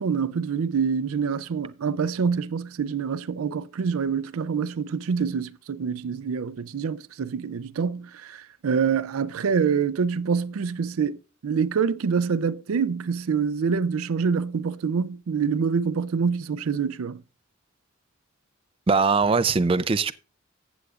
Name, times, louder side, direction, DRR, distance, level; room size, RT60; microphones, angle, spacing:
voice 1, 0.0-17.2, right 6 dB, 90° right, 0.4 m, -26 dB
voice 2, 18.9-20.1, right 4 dB, 25° right, 0.4 m, -21 dB
14.5 x 8.0 x 2.4 m
head